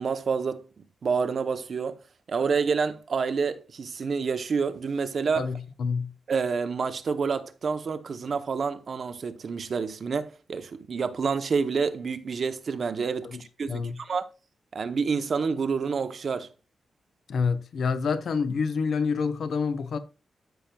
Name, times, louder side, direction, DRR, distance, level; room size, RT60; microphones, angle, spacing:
voice 1, 0.0-2.0 2.3-5.5 6.3-14.3 14.7-16.5, right 5 dB, 45° right, 0.7 m, -28 dB
voice 2, 5.4-6.1 13.2-13.4 13.7-14.0 17.3-20.0, left 5 dB, 60° left, 0.9 m, -27 dB
13.5 x 5.9 x 2.2 m
wide cardioid pair, 170°, 0 cm